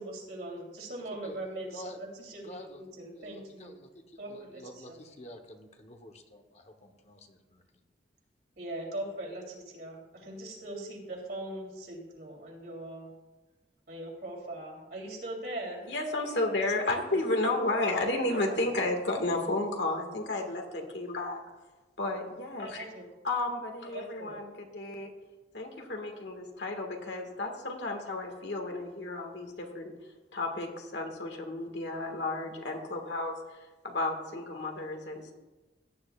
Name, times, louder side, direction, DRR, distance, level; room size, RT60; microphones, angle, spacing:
voice 1, 0.0-3.7 4.2-5.0 8.6-13.1 13.9-15.8 17.2-17.3 18.3-18.6 22.7-23.1 23.9-24.4, right 1 dB, 60° right, -2 dB, 3.1 m, -41 dB
voice 2, 2.4-7.6, left 1 dB, 35° left, 4 dB, 1.0 m, -49 dB
voice 3, 15.9-21.4 22.0-22.9 23.2-25.1 25.5-29.9 30.3-33.3 33.8-35.3, left 2 dB, 80° left, 3 dB, 1.7 m, -32 dB
16.5 x 9.7 x 2.4 m, 1.1 s
head